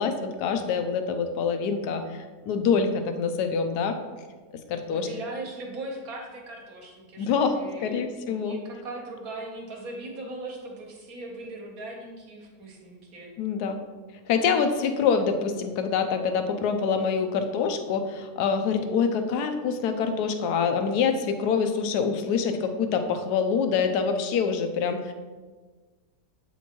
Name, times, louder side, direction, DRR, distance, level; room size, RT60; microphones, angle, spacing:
voice 1, 0.0-4.0 4.7-5.1 7.2-8.6 13.4-13.8 14.3-25.1, left 6 dB, 80° left, 7 dB, 1.1 m, -25 dB
voice 2, 4.9-13.3, right 2 dB, 60° right, 0 dB, 1.5 m, -39 dB
8.1 x 4.3 x 2.9 m, 1.4 s
omnidirectional pair, 1.7 m